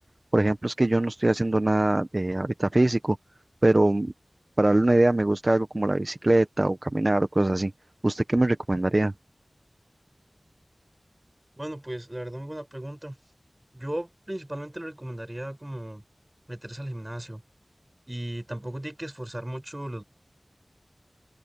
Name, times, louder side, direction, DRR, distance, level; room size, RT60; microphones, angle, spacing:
voice 1, 0.3-3.2 3.6-4.1 4.6-7.7 8.0-9.1, right 2 dB, 40° right, 0.9 m, -22 dB
voice 2, 11.6-13.2 13.7-16.0 16.5-17.4 18.1-20.0, right 1 dB, 20° right, 5.8 m, -36 dB
open air
wide cardioid pair, 55°, 0 cm